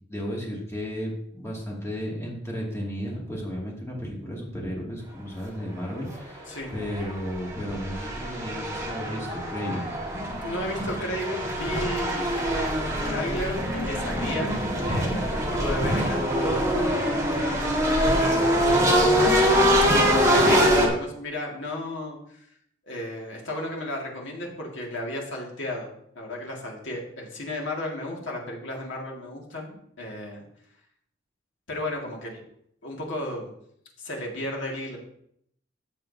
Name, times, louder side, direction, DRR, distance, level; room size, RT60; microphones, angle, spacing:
voice 1, 0.1-9.9, equal, 15° left, -3 dB, 2.4 m, -34 dB
sound 1, 6.1-6.2 6.7-20.9, equal, 15° right, 1.7 m, -24 dB
voice 2, 10.4-14.5 14.8-19.0 20.0-22.5 22.9-30.4 31.7-32.4 32.8-33.5 34.0-35.0, left 1 dB, 70° left, -1 dB, 2.1 m, -34 dB
13.5 x 7.3 x 2.8 m, 0.71 s
head